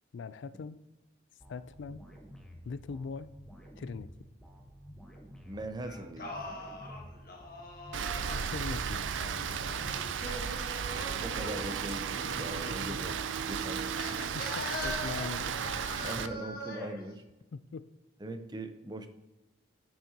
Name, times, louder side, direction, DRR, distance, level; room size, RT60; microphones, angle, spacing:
voice 1, 0.1-0.8 1.5-2.0 2.6-3.3 3.8-4.1 8.5-10.0 14.2-15.7 17.5-17.9, left 5 dB, 70° left, 15 dB, 0.3 m, -41 dB
sound 1, 1.4-13.7, equal, 5° left, 1.0 m, -51 dB
voice 2, 5.5-6.4 11.2-13.2 13.5-14.0 16.0-17.2 18.2-19.1, right 1 dB, 20° right, 8 dB, 0.6 m, -40 dB
Singing, 5.8-8.6 9.7-12.9 13.9-17.0, left 1 dB, 50° left, 1.3 m, -42 dB
Rain, 7.9-16.3, right 7 dB, 80° right, 0.4 m, -34 dB
10.5 x 6.3 x 2.8 m, 1.1 s
head